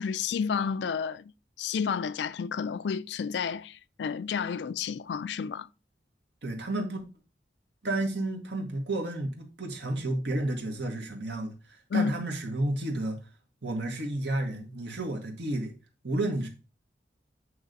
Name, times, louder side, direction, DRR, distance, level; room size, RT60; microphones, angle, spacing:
voice 1, 0.0-1.3 1.6-5.7 11.9-12.1, left 6 dB, 80° left, 0.3 m, -31 dB
voice 2, 6.4-7.0 7.8-13.2 13.6-15.7 16.0-16.5, right 1 dB, 80° right, 1.8 m, -31 dB
8.5 x 3.3 x 4.0 m
head